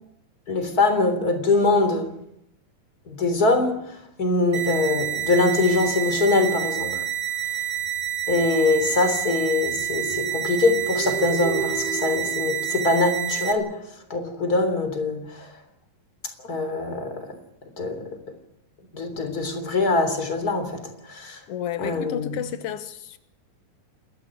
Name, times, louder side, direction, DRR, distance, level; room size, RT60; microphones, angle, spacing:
voice 1, 0.5-2.1 3.1-7.0 8.3-13.8 14.1-15.6 16.4-17.4 17.8-18.2 18.9-21.4 21.8-22.4, left 3 dB, 25° left, 3.6 m, -23 dB
sound 1, 4.5-13.5, right 11 dB, 45° right, 3.2 m, -28 dB
sound 2, 9.8-13.6, right 5 dB, 75° right, 4.0 m, -33 dB
voice 2, 21.5-23.2, left 10 dB, 90° left, 1.3 m, -31 dB
29.0 x 13.5 x 9.9 m
omnidirectional pair, 4.5 m